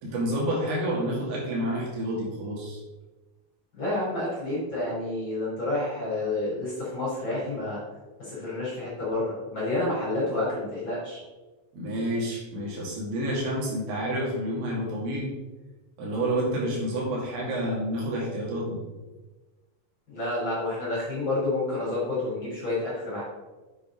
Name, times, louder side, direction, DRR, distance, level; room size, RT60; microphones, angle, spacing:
voice 1, 0.0-2.8 11.7-15.3 16.0-18.8, right 1 dB, 85° right, -4 dB, 4.6 m, -29 dB
voice 2, 3.7-7.8 8.2-11.2 20.1-23.2, left 2 dB, 30° left, -8 dB, 3.3 m, -29 dB
8.0 x 8.0 x 3.8 m, 1.2 s
omnidirectional pair, 5.2 m